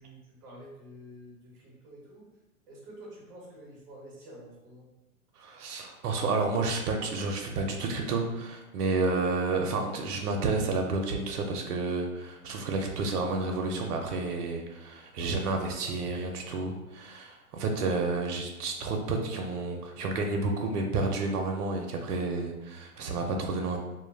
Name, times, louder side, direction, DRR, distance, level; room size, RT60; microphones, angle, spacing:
voice 1, 0.0-2.3 2.7-4.9 9.1-9.3, right 1 dB, 10° right, -4 dB, 0.4 m, -48 dB
voice 2, 5.4-23.8, right 3 dB, 90° right, 2 dB, 0.5 m, -30 dB
2.2 x 2.1 x 3.1 m, 1.0 s
hypercardioid pair, 125°, 44 cm